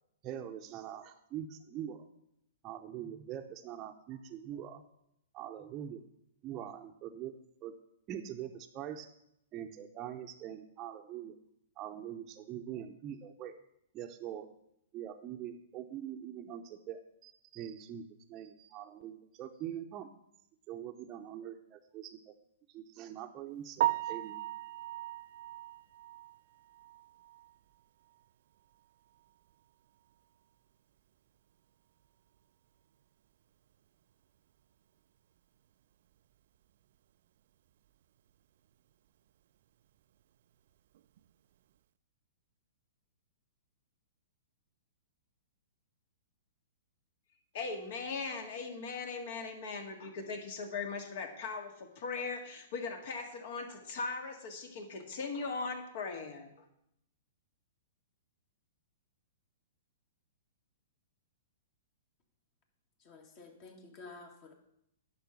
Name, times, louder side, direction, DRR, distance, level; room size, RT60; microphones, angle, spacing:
voice 1, 0.2-2.1 2.6-4.8 5.3-6.0 6.4-7.3 7.6-7.8 8.1-9.1 9.5-11.4 11.8-13.5 13.9-14.5 14.9-20.1 20.7-22.3 22.7-24.4, right 10 dB, 30° right, 2 dB, 0.7 m, -43 dB
Piano, 23.8-27.8 28.1-28.2 28.7-28.8 29.2-29.3 32.4-32.5 40.9-41.2, right 14 dB, 60° right, 0.3 m, -37 dB
voice 2, 47.5-56.7, left 4 dB, 55° left, 5 dB, 1.8 m, -39 dB
voice 3, 63.0-64.5, left 3 dB, 40° left, 3 dB, 2.2 m, -51 dB
10.5 x 5.5 x 7.1 m, 0.78 s
hypercardioid pair, 115°, 0 cm